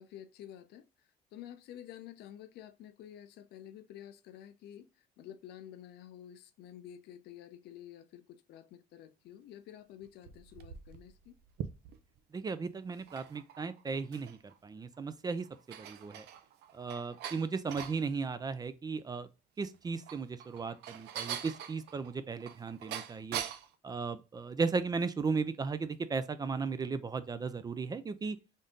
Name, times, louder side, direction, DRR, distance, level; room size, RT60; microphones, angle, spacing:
voice 1, 0.0-11.4, left 11 dB, 75° left, 0.5 m, -50 dB
sound 1, 10.0-12.2 12.9-14.5 14.9-15.0 15.4-18.0 19.7-23.7, right 9 dB, 80° right, 0.5 m, -43 dB
voice 2, 12.3-15.5 15.8-16.3 16.7-19.3 19.6-23.4 23.8-28.4, right 4 dB, 25° right, 0.4 m, -36 dB
3.6 x 2.7 x 3.7 m
cardioid pair, 110°, 17 cm